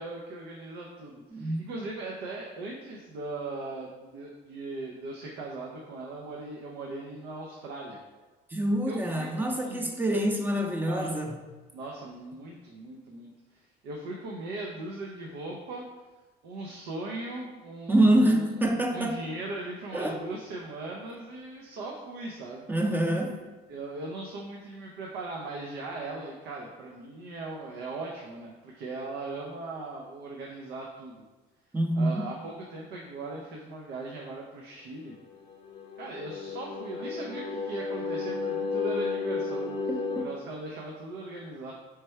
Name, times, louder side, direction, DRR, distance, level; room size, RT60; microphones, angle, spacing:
voice 1, 0.0-8.0 8.9-10.2 10.8-11.2 11.7-15.9 16.4-22.7 23.7-31.2 31.9-35.1 36.0-41.7, right 2 dB, 90° right, -1 dB, 0.6 m, -39 dB
voice 2, 8.5-11.3 17.9-19.2 19.9-20.2 22.7-23.4 31.7-32.2 40.2-40.3, right 1 dB, 10° right, 3 dB, 0.6 m, -25 dB
sound 1, 35.3-40.3, left 4 dB, 35° left, 0.5 m, -33 dB
3.3 x 3.2 x 4.4 m, 1.2 s
cardioid pair, 110°, 17 cm